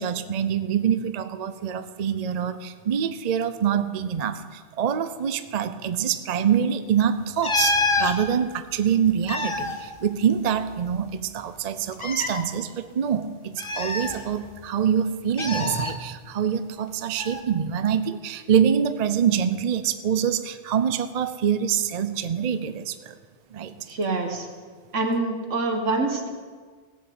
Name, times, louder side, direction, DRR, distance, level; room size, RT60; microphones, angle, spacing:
voice 1, 0.0-23.1 23.5-23.7, right 8 dB, 45° right, 11 dB, 0.5 m, -25 dB
sound 1, 7.4-8.2 9.1-10.7 11.0-11.1 11.9-12.4 13.6-14.6 15.4-15.9 17.2-17.4, left 3 dB, 25° left, 1.0 m, -27 dB
voice 2, 23.9-24.5 24.9-26.3, right 3 dB, 70° right, 4 dB, 2.0 m, -25 dB
16.0 x 7.1 x 7.9 m, 1.5 s
omnidirectional pair, 1.3 m